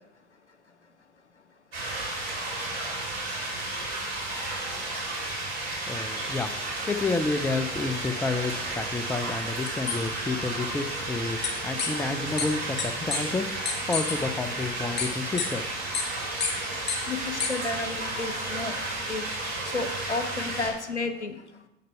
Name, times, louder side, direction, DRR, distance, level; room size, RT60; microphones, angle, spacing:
sound 1, 1.7-20.7, right 2 dB, 70° right, 3.3 m, -33 dB
voice 1, 5.9-15.7, left 3 dB, 5° left, 10 dB, 0.5 m, -30 dB
sound 2, 9.7-9.9 11.4-11.5 11.8-11.9 12.4-12.5 12.8-12.9 13.1-13.2 13.6-14.1 15.0-15.1 15.4-15.5 15.9-16.0 16.4-16.5 16.9-17.0 17.4-17.5, left 6 dB, 30° left, 2.1 m, -27 dB
voice 2, 17.1-18.7 19.0-19.3 19.6-21.4, left 3 dB, 90° left, 8 dB, 0.7 m, -32 dB
7.5 x 6.6 x 5.6 m, 0.90 s
figure-of-eight pair, 70°, 33 cm